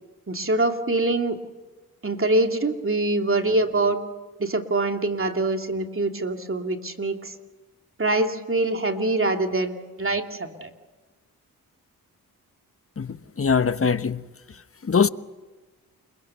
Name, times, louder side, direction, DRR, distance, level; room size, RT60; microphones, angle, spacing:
voice 1, 0.3-1.4 2.0-4.0 4.4-7.3 8.0-10.7, right 2 dB, 35° right, 2.7 m, -24 dB
voice 2, 13.0-14.2 14.8-15.1, left 6 dB, 35° left, 1.1 m, -22 dB
30.0 x 22.5 x 6.9 m
supercardioid pair, 45°, 37 cm